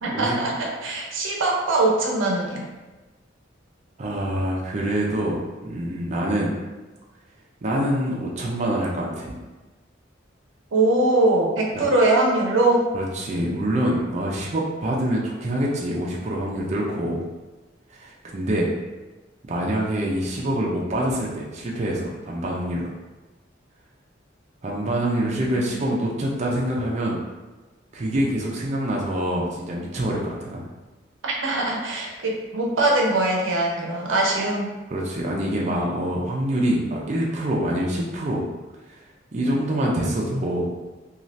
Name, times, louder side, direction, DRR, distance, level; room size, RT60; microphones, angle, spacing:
voice 1, 0.0-2.6 10.7-12.9 31.2-34.7, right 2 dB, 90° right, -1 dB, 0.6 m, -22 dB
voice 2, 4.0-6.5 7.6-9.3 11.8-11.9 12.9-17.2 17.9-18.7 19.5-22.9 24.6-27.2 27.9-30.7 34.9-38.4 38.9-39.0 39.3-40.7, right 1 dB, 35° right, -3 dB, 0.4 m, -25 dB
2.6 x 2.3 x 3.1 m, 1.2 s
head